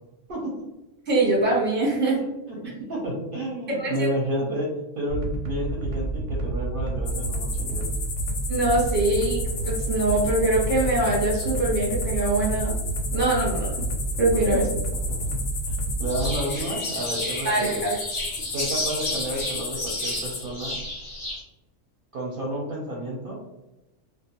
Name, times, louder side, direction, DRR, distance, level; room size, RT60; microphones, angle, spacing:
voice 1, 1.1-2.2 3.8-4.1 8.5-12.8 13.1-13.7 14.2-14.7 17.4-18.0, right 2 dB, 10° right, -4 dB, 0.6 m, -23 dB
voice 2, 2.2-7.9 14.3-14.6 15.1-17.8 18.5-20.8 22.1-23.4, right 1 dB, 60° right, -3 dB, 0.6 m, -31 dB
sound 1, 5.1-16.3, right 2 dB, 85° right, 0.9 m, -29 dB
sound 2, 7.0-20.4, left 4 dB, 65° left, 0.7 m, -34 dB
sound 3, 16.1-21.4, left 1 dB, 30° left, 0.7 m, -32 dB
2.3 x 2.1 x 2.8 m, 1.0 s
omnidirectional pair, 1.3 m